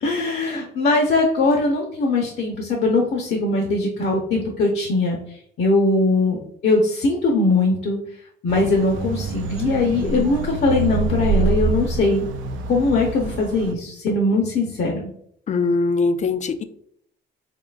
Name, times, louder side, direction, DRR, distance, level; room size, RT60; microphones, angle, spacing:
voice 1, 0.0-5.2 5.6-8.0 8.4-12.3 12.7-15.0, left 2 dB, 60° left, 0 dB, 0.8 m, -20 dB
sound 1, 8.5-13.7, right 3 dB, 75° right, 0.5 m, -26 dB
voice 2, 15.5-16.6, left 4 dB, 35° left, 10 dB, 0.4 m, -21 dB
3.7 x 3.7 x 2.4 m, 0.67 s
cardioid pair, 90°, 20 cm